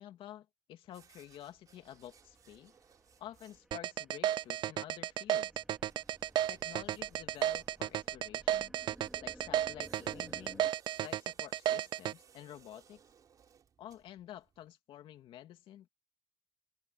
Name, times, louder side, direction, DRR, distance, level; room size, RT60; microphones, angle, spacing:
voice 1, 0.0-2.7 3.2-5.5 6.5-8.7 9.2-10.7 11.0-13.0 13.8-15.9, left 12 dB, 75° left, 2.7 m, -50 dB
sound 1, 0.8-14.7, right 7 dB, 40° right, 4.0 m, -65 dB
sound 2, 1.7-10.7, right 1 dB, 5° right, 3.2 m, -58 dB
sound 3, 3.7-12.1, right 12 dB, 60° right, 0.4 m, -33 dB
cardioid pair, 160°, 9 cm